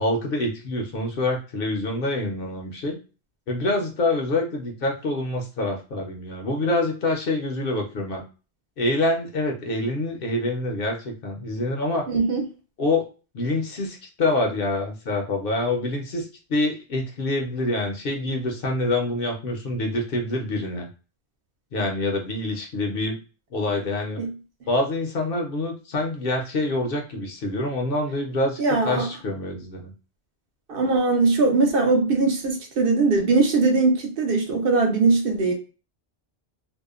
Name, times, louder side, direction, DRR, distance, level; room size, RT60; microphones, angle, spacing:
voice 1, 0.0-3.0 3.5-8.2 8.8-12.1 12.8-13.1 13.3-20.9 21.7-23.2 23.5-24.2 24.7-29.9, left 2 dB, 60° left, 0.8 m, -26 dB
voice 2, 12.1-12.4 24.2-24.3 28.6-29.1 30.7-35.5, right 3 dB, 60° right, 0.8 m, -21 dB
2.7 x 2.1 x 2.3 m
omnidirectional pair, 1.1 m